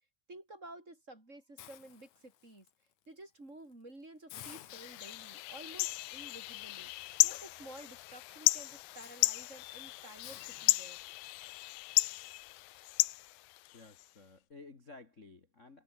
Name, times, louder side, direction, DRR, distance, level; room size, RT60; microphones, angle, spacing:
voice 1, 0.3-2.7 3.1-6.9 7.2-11.0, right 2 dB, 20° right, 6.0 m, -52 dB
Hiss, 1.6-2.7 3.2-3.4 3.7-3.8 4.3-11.4, left 12 dB, 60° left, 2.3 m, -56 dB
sound 1, 4.7-14.1, left 19 dB, 75° left, 2.2 m, -34 dB
voice 2, 13.7-15.8, left 3 dB, 30° left, 1.4 m, -54 dB
omnidirectional pair, 4.4 m